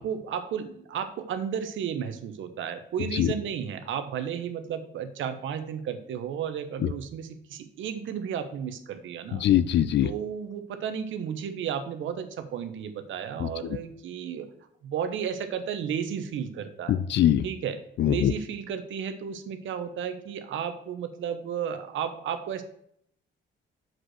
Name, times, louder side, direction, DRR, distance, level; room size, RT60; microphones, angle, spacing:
voice 1, 0.0-9.4 10.0-14.5 14.8-17.0 17.4-17.8 18.0-22.6, right 8 dB, 75° right, 9 dB, 1.0 m, -33 dB
voice 2, 9.3-10.1 13.4-13.5 16.9-17.4 18.0-18.3, left 11 dB, 65° left, 16 dB, 0.5 m, -22 dB
6.1 x 5.1 x 6.3 m, 0.68 s
cardioid pair, 90°, 20 cm